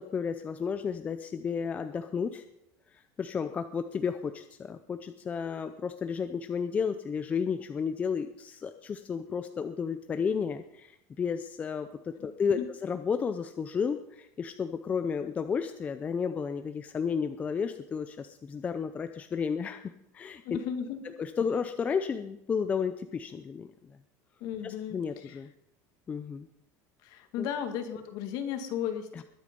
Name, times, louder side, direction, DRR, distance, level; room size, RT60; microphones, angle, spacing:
voice 1, 0.0-2.4 2.9-20.6 21.2-24.0 24.6-25.5 26.1-26.5 27.4-27.5 29.2-29.3, left 6 dB, 15° left, 9 dB, 0.5 m, -32 dB
voice 2, 20.4-21.0 24.4-25.4 27.0-29.2, left 8 dB, 50° left, 7 dB, 1.9 m, -35 dB
21.5 x 8.2 x 5.3 m, 0.78 s
cardioid pair, 170°, 8 cm